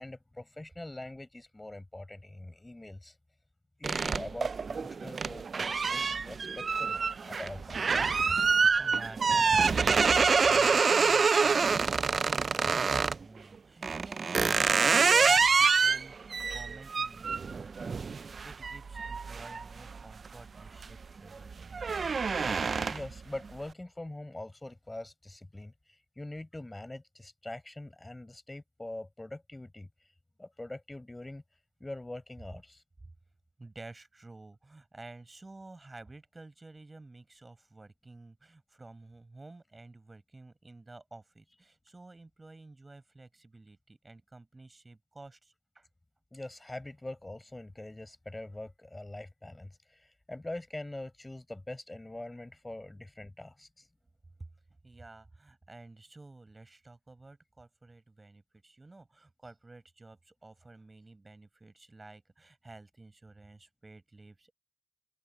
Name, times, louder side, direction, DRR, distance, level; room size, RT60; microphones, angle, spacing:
voice 1, 0.0-3.1 3.8-7.0 7.2-8.1 22.8-25.7 26.2-29.9 30.4-31.4 31.8-32.8 46.3-49.7 50.3-53.7, left 1 dB, 30° left, 5.5 m, -43 dB
sound 1, 3.8-13.2 13.8-20.3 20.7-21.0 21.4-23.2, right 5 dB, 90° right, 0.3 m, -27 dB
voice 2, 8.5-21.8 33.6-45.9 54.4-54.5 54.8-64.5, right 2 dB, 45° right, 5.8 m, -51 dB
open air
cardioid pair, 45°, 0 cm